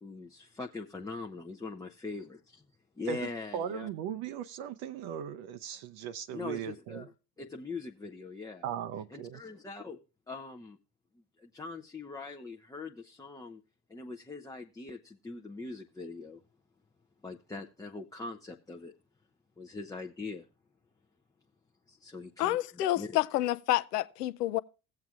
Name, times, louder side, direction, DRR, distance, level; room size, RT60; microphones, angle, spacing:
voice 1, 0.0-2.6 3.0-3.9 6.3-7.1 7.4-8.6 9.1-10.0 10.3-10.8 11.4-13.6 13.9-16.4 17.2-18.9 19.6-20.5 21.9-23.2, left 3 dB, 10° left, 0.5 m, -42 dB
voice 2, 3.1-7.1 8.6-9.4, right 9 dB, 55° right, 0.6 m, -38 dB
voice 3, 22.4-24.6, left 14 dB, 85° left, 0.6 m, -29 dB
17.5 x 7.7 x 2.4 m
hypercardioid pair, 75°, 47 cm